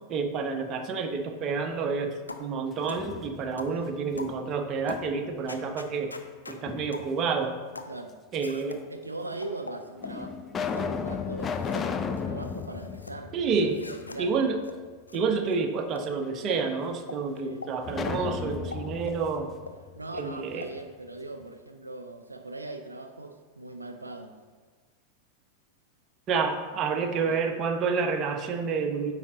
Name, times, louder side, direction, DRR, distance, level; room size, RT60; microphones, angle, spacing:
voice 1, 0.1-6.1 6.5-7.5 8.3-8.8 13.3-13.8 14.2-14.6 15.1-19.5 20.1-20.7 26.3-29.1, right 5 dB, 30° right, 5 dB, 0.8 m, -29 dB
sound 1, 2.3-2.5 2.9-3.1 3.6-3.8 4.2-4.4 4.9-5.1 5.5-6.6 6.9-7.1 7.7-8.0 8.4-8.8 9.4-10.2 10.7-10.9 11.4-11.9 12.2-13.1 13.7-14.2 14.6-14.8 15.1-15.2 15.5-15.6 15.9-16.1 16.5-16.6 17.1-17.2 17.6-17.7 18.1-18.2 18.7-19.2 19.7-19.8 20.2-20.3 20.6-20.7, left 3 dB, 80° left, 0.5 m, -42 dB
sound 2, 2.7-3.7 4.1-5.4 6.7-7.5 8.3-8.4 9.3-9.4 10.0-14.1 14.4-14.5 17.8-20.6, left 6 dB, 20° left, 0.4 m, -35 dB
voice 2, 8.9-14.4 17.4-17.6 19.9-24.3 27.0-27.4, right 2 dB, 80° right, 5 dB, 0.4 m, -40 dB
8.6 x 5.0 x 3.7 m, 1.5 s
figure-of-eight pair, 90°, 0 cm